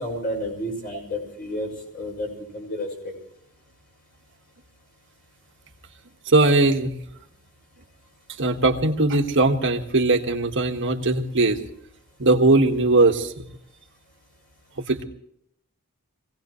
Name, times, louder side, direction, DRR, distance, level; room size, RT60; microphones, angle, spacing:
voice 1, 0.0-3.1, left 1 dB, 40° left, 1 dB, 5.9 m, -31 dB
voice 2, 6.3-6.9 8.4-11.6 12.2-13.5 14.9-15.0, right 2 dB, 55° right, 4 dB, 1.5 m, -20 dB
24.0 x 17.5 x 3.1 m, 0.73 s
head